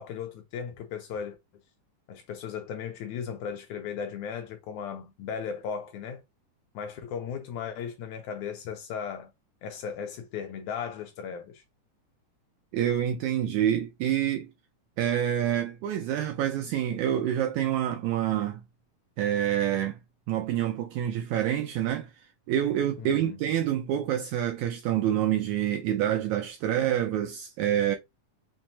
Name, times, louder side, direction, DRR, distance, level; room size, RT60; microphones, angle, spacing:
voice 1, 0.0-1.4 2.1-6.2 6.7-9.3 9.6-11.6 23.0-23.4, left 7 dB, 80° left, 1.8 m, -36 dB
voice 2, 12.7-14.5 15.0-18.6 19.2-20.0 20.3-22.1 22.5-28.0, right 11 dB, 80° right, 1.7 m, -27 dB
6.1 x 2.1 x 2.7 m
omnidirectional pair, 3.7 m